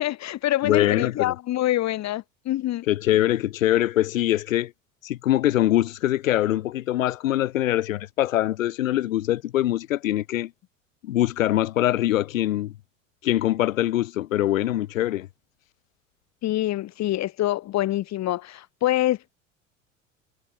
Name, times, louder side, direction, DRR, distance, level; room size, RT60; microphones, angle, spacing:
voice 1, 0.0-2.8 16.4-19.2, left 14 dB, 45° left, 1.7 m, -25 dB
voice 2, 0.6-1.3 2.9-4.7 5.0-10.5 11.0-12.7 13.2-15.3, left 14 dB, 80° left, 0.6 m, -23 dB
hypercardioid pair, 75°, 39 cm